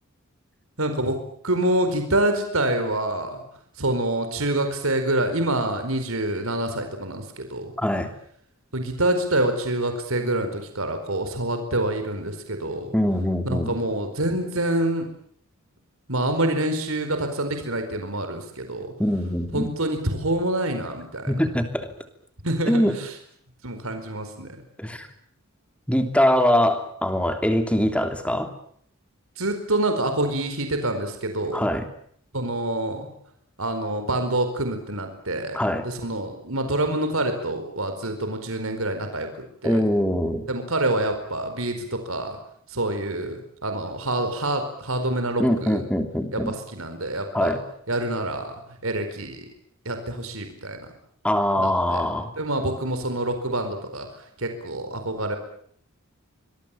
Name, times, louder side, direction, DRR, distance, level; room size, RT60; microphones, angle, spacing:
voice 1, 0.8-1.2 1.4-3.4 3.8-7.7 8.7-12.9 13.4-15.1 16.1-18.9 19.5-21.3 22.4-23.1 23.6-24.5 29.4-31.7 32.3-33.1 33.6-35.6 35.8-39.3 39.6-39.8 40.5-42.4 42.7-45.8 46.3-47.6 47.9-49.4 49.8-50.8 51.6-52.0 52.4-54.1 54.4-55.4, right 1 dB, 70° right, 7 dB, 4.6 m, -26 dB
voice 2, 7.8-8.1 12.9-13.8 19.0-19.7 21.3-21.9 22.7-22.9 24.8-25.1 25.9-28.5 31.5-31.9 35.5-35.8 39.6-40.5 45.4-46.5 47.3-47.6 51.2-52.3, left 1 dB, 5° left, 7 dB, 3.1 m, -23 dB
26.0 x 21.5 x 9.0 m, 0.64 s
head